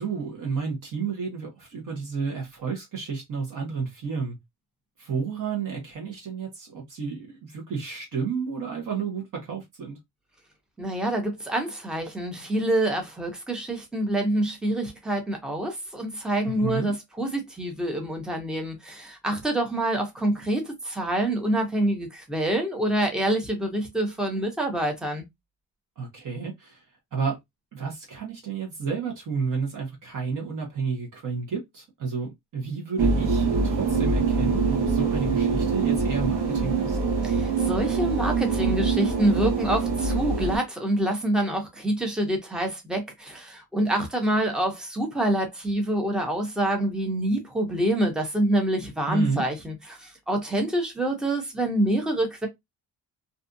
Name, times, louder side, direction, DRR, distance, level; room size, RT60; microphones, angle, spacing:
voice 1, 0.0-4.4 5.0-10.0 16.4-16.9 26.0-26.8 27.1-27.4 27.7-37.0 49.1-49.4, right 5 dB, 55° right, 0.9 m, -31 dB
voice 2, 10.8-25.2 37.2-52.5, right 1 dB, ahead, 0.5 m, -26 dB
sound 1, 33.0-40.6, right 4 dB, 80° right, 0.9 m, -24 dB
2.6 x 2.3 x 2.5 m
cardioid pair, 165°, 38 cm